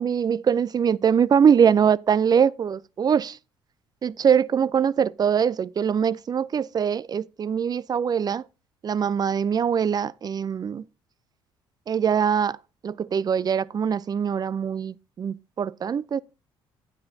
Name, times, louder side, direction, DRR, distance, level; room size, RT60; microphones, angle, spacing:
voice 1, 0.0-3.4 4.0-8.4 8.8-10.9 11.9-12.6 12.8-16.2, right 7 dB, 30° right, 0.4 m, -22 dB
11.0 x 9.4 x 2.7 m
hypercardioid pair, 55°, 13 cm